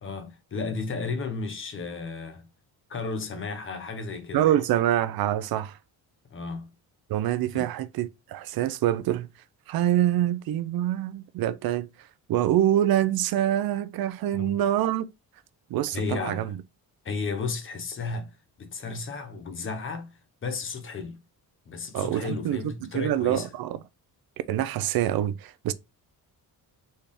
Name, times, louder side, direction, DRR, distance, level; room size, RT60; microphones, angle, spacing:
voice 1, 0.0-2.4 2.9-4.6 6.3-6.7 7.5-7.6 14.3-14.5 15.9-16.5 17.0-20.1 20.4-21.2 21.7-23.5, left 4 dB, 30° left, 0.8 m, -33 dB
voice 2, 4.3-5.8 7.1-9.3 9.7-15.1 15.7-16.6 21.9-23.8 24.5-25.7, right 12 dB, 65° right, 0.5 m, -25 dB
4.2 x 3.4 x 3.5 m
cardioid pair, 175°, 38 cm